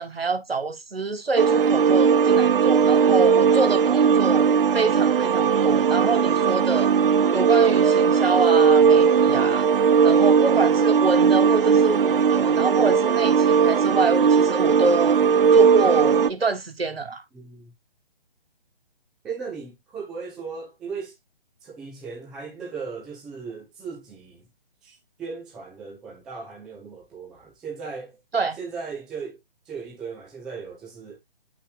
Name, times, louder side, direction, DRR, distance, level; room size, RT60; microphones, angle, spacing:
voice 1, 0.0-6.9 7.3-9.7 10.0-15.2 15.5-17.2 28.3-28.6, right 3 dB, 80° right, 1.6 m, -26 dB
sound 1, 1.4-16.3, right 6 dB, 65° right, 0.6 m, -18 dB
voice 2, 17.3-17.7 19.2-21.1 21.6-24.4 24.8-28.2 28.6-29.4 29.7-31.2, right 5 dB, ahead, 0.4 m, -37 dB
8.4 x 5.7 x 2.5 m
figure-of-eight pair, 145°, 30 cm